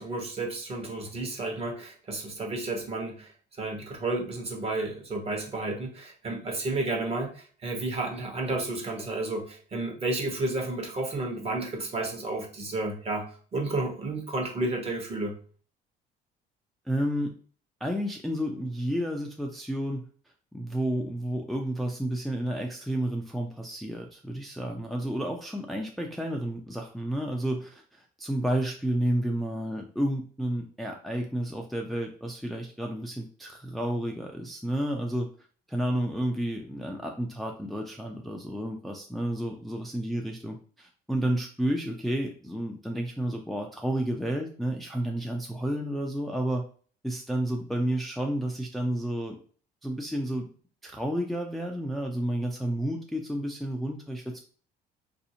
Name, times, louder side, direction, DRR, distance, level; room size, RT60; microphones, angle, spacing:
voice 1, 0.0-3.3 3.6-15.3, right 2 dB, 35° right, 2 dB, 1.0 m, -32 dB
voice 2, 16.9-17.3 17.8-20.0 20.5-35.3 35.7-46.6 47.0-49.4 49.8-50.5 50.8-54.4, right 1 dB, ahead, 1 dB, 0.4 m, -31 dB
4.0 x 2.6 x 2.7 m, 0.43 s
cardioid pair, 110°, 17 cm